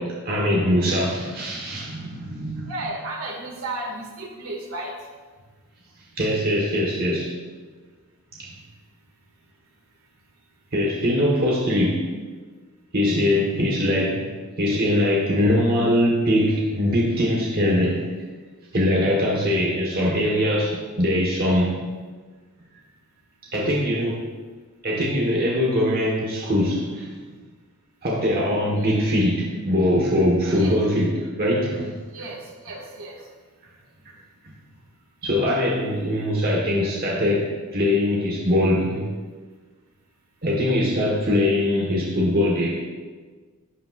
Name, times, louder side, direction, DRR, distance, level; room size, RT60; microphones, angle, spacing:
voice 1, 0.0-2.7 6.2-7.3 8.4-8.5 10.7-12.0 12.9-14.3 14.6-18.0 18.7-21.8 23.5-24.2 24.8-27.1 28.0-32.0 34.4-34.5 35.2-39.1 40.4-42.8, left 1 dB, 45° right, -4 dB, 1.3 m, -22 dB
voice 2, 2.7-4.9 28.8-29.1 30.5-30.8 32.1-33.2, right 2 dB, 70° right, -1 dB, 2.0 m, -34 dB
11.5 x 8.8 x 2.4 m, 1.4 s
head